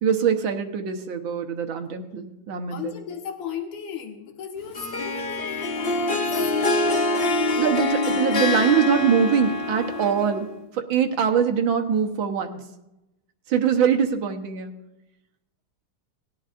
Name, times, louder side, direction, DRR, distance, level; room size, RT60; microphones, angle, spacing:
voice 1, 0.0-2.9 7.6-10.5 10.7-12.6 13.5-14.7, right 7 dB, 65° right, 5 dB, 1.8 m, -23 dB
voice 2, 2.7-7.8, left 8 dB, 85° left, 2 dB, 2.1 m, -36 dB
Harp, 4.7-10.5, left 2 dB, 60° left, 0.6 m, -25 dB
19.0 x 11.0 x 2.5 m, 0.93 s
omnidirectional pair, 2.4 m